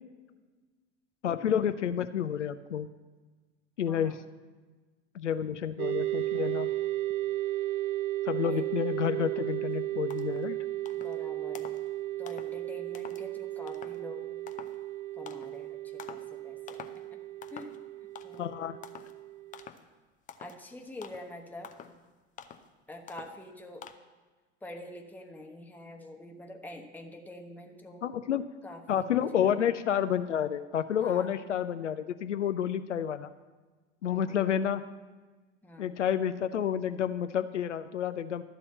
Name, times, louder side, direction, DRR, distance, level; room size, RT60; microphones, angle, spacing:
voice 1, 1.2-2.9 3.8-4.2 5.1-6.7 8.3-10.6 18.4-18.8 28.0-28.4 28.9-33.3 34.0-34.8 35.8-38.4, left 9 dB, 80° left, 11 dB, 0.5 m, -30 dB
voice 2, 3.9-4.2 8.4-8.6 10.9-11.7 12.2-14.3 15.2-16.8 17.1-17.2 17.5-17.7 18.2-18.8 20.4-21.7 22.9-23.9 24.6-28.1 28.6-29.7 31.0-31.4 34.1-34.5 35.6-35.9, left 1 dB, 5° left, 2 dB, 1.1 m, -46 dB
sound 1, 5.8-19.7, right 15 dB, 45° right, 0.8 m, -34 dB
sound 2, 9.7-9.8 10.1-10.5 10.9-11.2 11.6-11.9 12.3-12.6 12.9-13.3 13.7-14.0 14.5-14.8 15.3-15.6 16.0-16.3 16.7-17.0 17.4-17.8 18.2-18.5 18.8-19.2 19.5-19.9 20.3-20.6 21.0-21.3 21.6-22.0 22.4-22.7 23.1-23.4 23.8-23.9, left 8 dB, 20° left, 0.6 m, -47 dB
12.0 x 4.2 x 7.8 m, 1.3 s
figure-of-eight pair, 80°, 35 cm